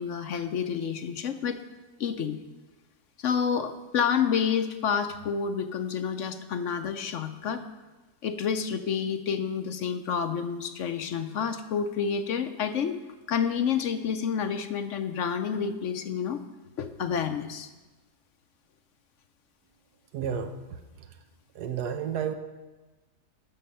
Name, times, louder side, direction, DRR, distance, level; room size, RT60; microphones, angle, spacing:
voice 1, 0.0-1.6 2.0-2.4 3.2-7.6 8.2-13.0 13.3-16.4 16.8-17.7, left 7 dB, 60° left, 9 dB, 0.9 m, -29 dB
voice 2, 20.1-20.5 21.6-22.3, right 8 dB, 80° right, 6 dB, 1.3 m, -30 dB
12.5 x 6.5 x 5.6 m, 1.2 s
omnidirectional pair, 1.7 m